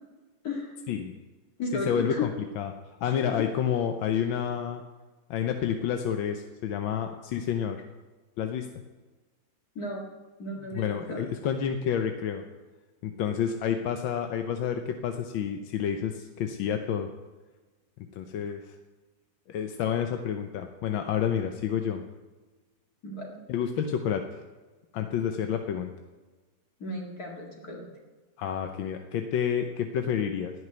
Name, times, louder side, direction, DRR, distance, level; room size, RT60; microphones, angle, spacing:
voice 1, 0.4-0.7 1.6-2.2 3.0-3.4 9.8-10.1 10.4-11.2 18.4-18.5 23.0-23.4 26.8-27.9, left 2 dB, 50° left, -1 dB, 2.5 m, -35 dB
voice 2, 1.7-2.3 2.6-2.7 3.0-4.8 5.3-7.8 8.4-8.7 10.7-12.4 13.0-17.1 18.2-18.7 19.5-22.0 23.5-24.2 24.9-25.9 28.4-30.5, left 8 dB, 85° left, 6 dB, 1.6 m, -29 dB
18.0 x 6.5 x 9.4 m, 1.3 s
omnidirectional pair, 2.1 m